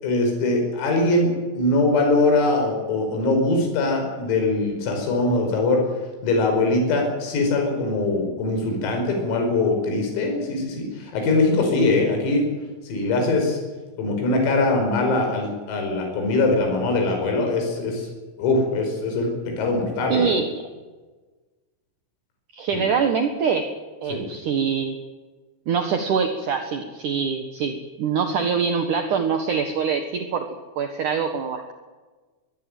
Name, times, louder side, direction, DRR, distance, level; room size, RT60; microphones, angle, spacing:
voice 1, 0.0-5.8 6.2-12.5 12.8-13.6 14.0-18.1 18.4-20.3 22.7-22.8 24.1-24.2, left 2 dB, 85° left, 3 dB, 8.0 m, -22 dB
voice 2, 20.1-20.5 22.5-23.7 24.0-25.0 25.7-31.7, right 6 dB, 70° right, 6 dB, 1.9 m, -24 dB
23.0 x 21.0 x 9.2 m, 1.3 s
omnidirectional pair, 6.0 m